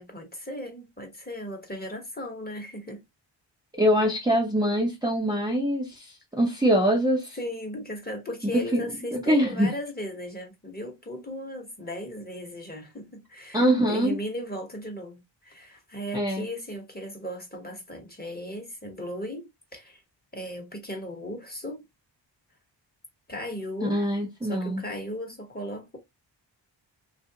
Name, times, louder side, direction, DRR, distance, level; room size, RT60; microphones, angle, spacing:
voice 1, 0.0-3.0 7.3-20.0 20.3-21.9 23.3-24.0 24.4-26.0, equal, 20° left, 1.2 m, -37 dB
voice 2, 3.8-6.1 6.3-7.4 8.5-8.8 9.1-9.7 13.5-14.2 16.1-16.5 23.8-24.8, equal, 10° right, 0.7 m, -23 dB
3.0 x 2.6 x 2.8 m
wide cardioid pair, 95°, 46 cm